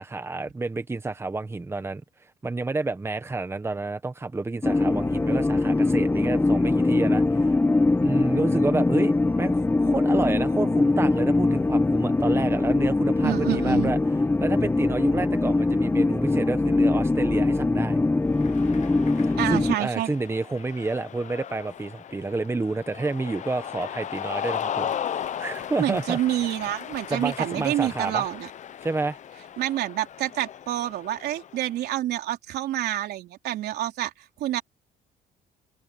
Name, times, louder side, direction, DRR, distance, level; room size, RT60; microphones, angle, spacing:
voice 1, 0.0-7.6 8.0-14.0 14.4-18.0 19.1-26.2 27.1-28.3 28.8-29.2, right 3 dB, 15° right, 1.3 m, -29 dB
sound 1, 4.6-19.8, left 2 dB, 10° left, 1.3 m, -22 dB
voice 2, 13.2-13.9 19.4-20.1 25.8-28.5 29.6-34.1 34.4-34.6, right 13 dB, 75° right, 3.7 m, -27 dB
Cheering, 18.3-31.7, left 9 dB, 45° left, 0.9 m, -36 dB
cardioid pair, 110°, 17 cm